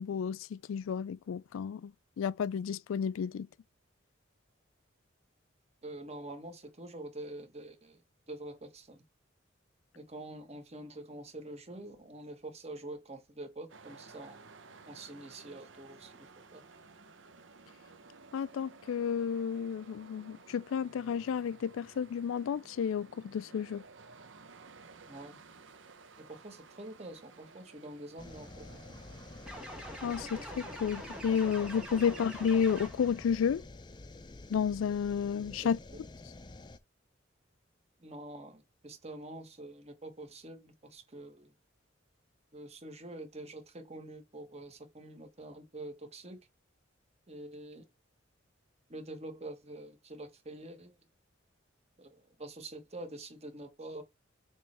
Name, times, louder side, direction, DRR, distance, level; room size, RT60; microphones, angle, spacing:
voice 1, 0.0-3.5 18.3-23.8 30.0-33.6 34.5-35.8, left 7 dB, 85° left, 0.3 m, -32 dB
voice 2, 5.8-8.0 8.3-9.0 9.9-14.4 14.9-16.6 25.1-25.4 26.2-29.0 35.6-36.0 38.0-41.5 42.5-46.4 47.3-47.9 48.9-51.0 52.0-54.0, right 1 dB, 30° right, 1.2 m, -46 dB
sound 1, 13.7-29.5, right 4 dB, 70° right, 0.9 m, -55 dB
sound 2, 28.2-36.8, left 2 dB, 20° left, 0.5 m, -49 dB
sound 3, 29.5-33.2, equal, 5° right, 1.6 m, -44 dB
7.0 x 3.1 x 4.3 m
head